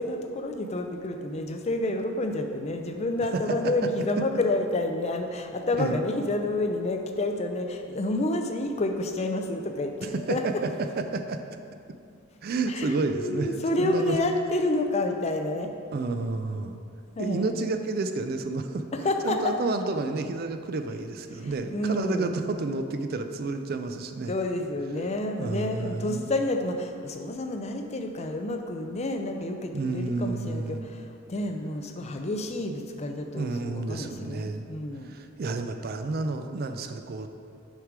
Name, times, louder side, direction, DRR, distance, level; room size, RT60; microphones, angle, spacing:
voice 1, 0.0-10.4 12.7-15.7 17.1-17.5 18.9-19.6 21.4-22.3 24.3-35.1, left 2 dB, 30° left, 5 dB, 0.4 m, -29 dB
voice 2, 10.0-11.4 12.4-14.2 15.9-16.8 17.2-18.8 19.2-24.3 25.4-26.3 29.7-30.9 33.3-34.7 35.0-37.3, right 3 dB, 45° right, 8 dB, 0.4 m, -30 dB
6.4 x 5.1 x 4.7 m, 2.4 s
head